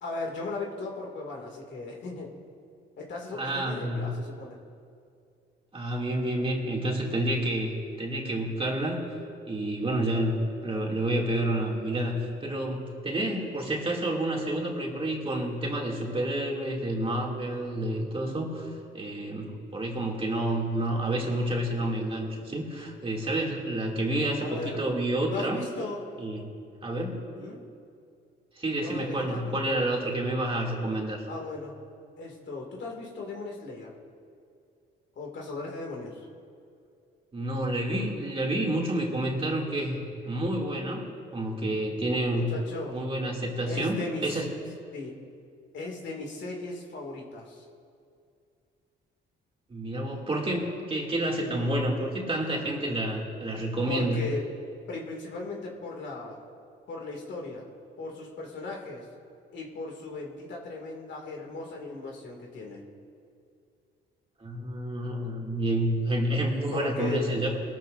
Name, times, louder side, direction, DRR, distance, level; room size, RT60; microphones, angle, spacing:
voice 1, 0.0-2.3 3.0-4.6 22.8-22.9 24.4-24.8 25.3-26.0 27.4-27.6 28.7-29.9 31.3-31.7 32.2-33.9 35.2-36.3 42.3-43.0 43.7-44.4 44.9-45.1 45.7-47.6 52.4-52.7 53.9-54.5 54.9-56.4 56.9-57.6 58.0-59.1 59.5-62.8 66.7-67.3, left 3 dB, 65° left, -1 dB, 2.4 m, -37 dB
voice 2, 3.3-4.1 5.7-7.7 8.0-9.0 9.5-25.6 26.2-26.4 26.8-27.2 28.6-31.2 37.3-41.1 41.3-42.5 42.9-44.5 49.7-54.2 64.4-67.6, right 1 dB, 30° right, -2 dB, 2.5 m, -29 dB
21.0 x 13.5 x 2.6 m, 2.4 s
cardioid pair, 90°, 20 cm